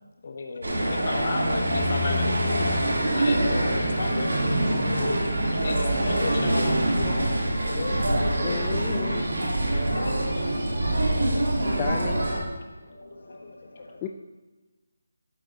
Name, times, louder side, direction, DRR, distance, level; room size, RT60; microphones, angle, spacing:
voice 1, 0.2-4.5 5.4-8.1 13.4-14.0, left 3 dB, 45° left, 4 dB, 1.2 m, -36 dB
sound 1, 0.6-12.4, right 1 dB, 75° right, 3.2 m, -24 dB
voice 2, 8.4-9.3 11.6-12.3 14.0-14.1, left 7 dB, 15° left, 4 dB, 0.3 m, -33 dB
voice 3, 9.8-11.5 12.9-14.0, left 2 dB, 65° left, 2 dB, 1.7 m, -44 dB
12.5 x 8.1 x 2.9 m, 1.2 s
figure-of-eight pair, 165°, 0 cm